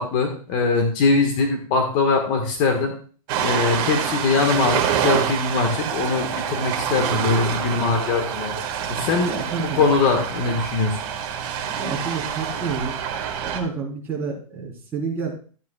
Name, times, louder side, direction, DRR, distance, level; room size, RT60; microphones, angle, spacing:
voice 1, 0.0-2.9 3.3-8.5 8.9-9.3 9.6-11.0, left 4 dB, 35° left, 4 dB, 1.6 m, -22 dB
Ocean, 3.3-13.6, right 8 dB, 40° right, 1.8 m, -26 dB
voice 2, 9.3-9.8 11.8-13.0 13.4-15.3, right 5 dB, 10° right, -5 dB, 3.8 m, -29 dB
14.0 x 9.5 x 2.4 m, 0.41 s
supercardioid pair, 160°, 18 cm